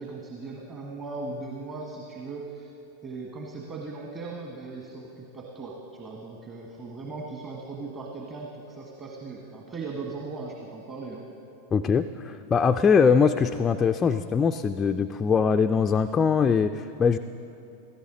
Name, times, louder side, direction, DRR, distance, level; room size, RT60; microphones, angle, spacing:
voice 1, 0.0-2.7 3.0-11.3, right 3 dB, 25° right, -1 dB, 1.4 m, -38 dB
voice 2, 11.7-17.2, left 6 dB, 20° left, 7 dB, 0.3 m, -22 dB
16.0 x 14.0 x 3.8 m, 2.9 s
figure-of-eight pair, 90°, 0 cm